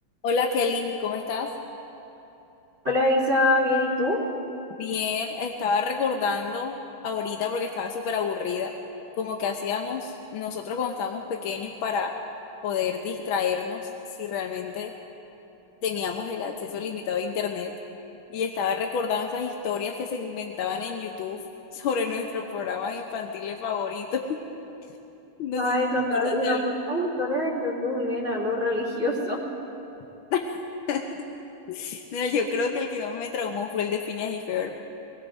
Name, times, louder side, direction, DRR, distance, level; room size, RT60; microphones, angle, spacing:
voice 1, 0.2-1.5 4.8-6.8 7.0-8.7 9.2-12.1 12.6-13.8 14.2-14.9 15.8-17.7 18.3-21.4 21.7-24.4 25.4-25.7 26.1-26.8 30.3-30.4 30.9-31.0 31.7-34.7, left 6 dB, 75° left, 2 dB, 1.6 m, -29 dB
voice 2, 2.8-4.2 25.6-29.4, left 1 dB, 35° right, -3 dB, 3.3 m, -24 dB
26.5 x 19.5 x 2.6 m, 3.0 s
omnidirectional pair, 2.4 m